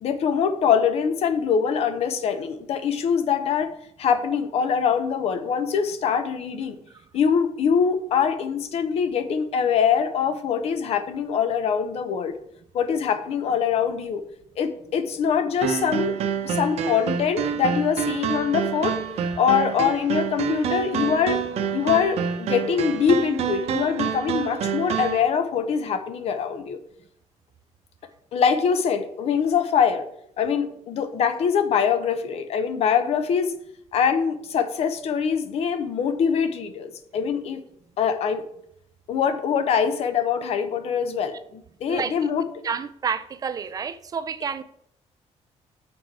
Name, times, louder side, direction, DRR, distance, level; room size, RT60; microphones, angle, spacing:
voice 1, 0.0-3.7 4.0-6.8 7.1-12.3 12.7-14.2 14.6-16.2 16.4-19.0 19.4-21.4 21.7-26.8 28.3-30.1 30.4-33.5 33.9-37.6 38.0-38.4 39.1-42.5, left 7 dB, 55° left, 10 dB, 0.8 m, -23 dB
sound 1, 15.6-25.2, right 8 dB, 60° right, 0.8 m, -27 dB
voice 2, 42.6-44.6, right 6 dB, 30° right, 13 dB, 0.3 m, -29 dB
7.3 x 6.2 x 4.7 m, 0.73 s
cardioid pair, 175°, 12 cm